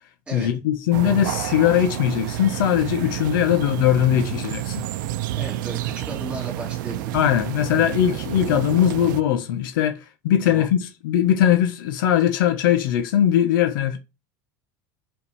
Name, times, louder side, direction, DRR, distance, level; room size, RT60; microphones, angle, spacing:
voice 1, 0.3-4.8 7.1-10.0 10.2-14.0, left 10 dB, 90° left, 1.2 m, -20 dB
sound 1, 0.9-9.2, right 13 dB, 75° right, 0.6 m, -29 dB
voice 2, 5.4-7.2 10.4-10.7, right 2 dB, 10° right, 2.6 m, -35 dB
5.6 x 5.2 x 5.5 m
supercardioid pair, 180°, 11 cm